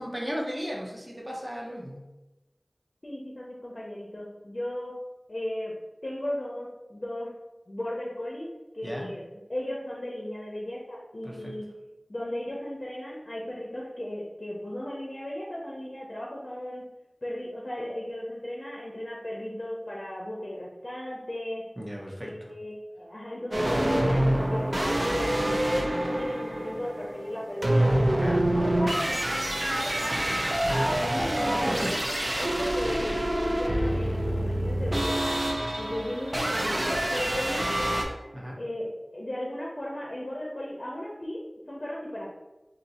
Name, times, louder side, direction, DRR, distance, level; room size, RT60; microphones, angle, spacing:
voice 1, 0.0-2.0 8.8-9.1 11.2-11.5 21.8-22.3 28.2-28.5 30.6-30.9 31.6-31.9 38.3-38.6, equal, 25° right, -2 dB, 0.8 m, -34 dB
voice 2, 3.0-5.0 5.3-5.7 6.0-7.3 7.7-8.5 8.7-9.2 9.5-11.7 12.1-16.9 17.2-21.6 22.2-30.3 30.9-35.4 35.8-38.1 38.5-41.4 41.7-42.3, left 1 dB, 50° left, -3 dB, 0.6 m, -36 dB
sound 1, 23.5-38.0, right 1 dB, 45° right, 0.5 m, -26 dB
2.7 x 2.6 x 4.1 m, 1.1 s
wide cardioid pair, 50°, 0 cm